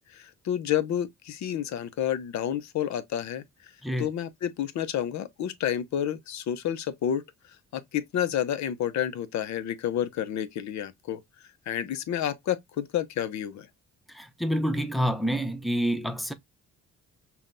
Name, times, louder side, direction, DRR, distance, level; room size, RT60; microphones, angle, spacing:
voice 1, 0.0-3.4 4.0-7.2 7.7-11.2 11.7-13.7, left 10 dB, 65° left, 0.7 m, -30 dB
voice 2, 14.1-16.3, equal, ahead, 0.6 m, -28 dB
5.6 x 2.3 x 2.6 m
cardioid pair, 90°, 30 cm